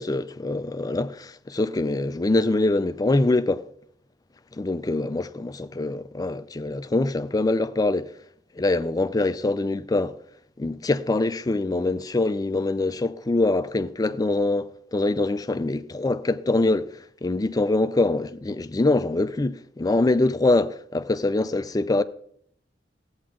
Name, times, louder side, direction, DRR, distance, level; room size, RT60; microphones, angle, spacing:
voice 1, 0.0-3.6 4.5-8.1 8.6-10.2 10.6-22.0, left 2 dB, 20° left, 0.4 m, -24 dB
14.0 x 8.8 x 3.7 m
head